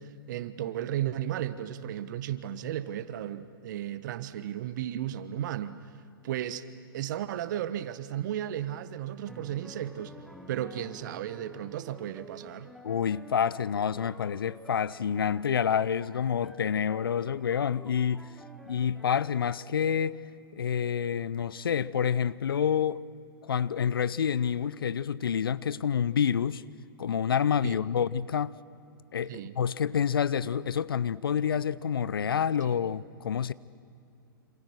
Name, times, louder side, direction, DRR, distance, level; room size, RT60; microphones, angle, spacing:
voice 1, 0.0-5.9 6.2-6.7 6.9-10.2 10.5-12.7 27.6-27.9 29.3-29.5 32.6-32.7, right 11 dB, 55° right, 1.3 m, -34 dB
sound 1, 9.3-19.1, right 1 dB, ahead, 1.7 m, -50 dB
voice 2, 12.8-18.3 18.7-20.2 20.5-23.0 23.4-26.6 27.0-28.6 29.1-33.5, left 8 dB, 75° left, 0.7 m, -28 dB
27.5 x 27.5 x 6.4 m
figure-of-eight pair, 115°, 12 cm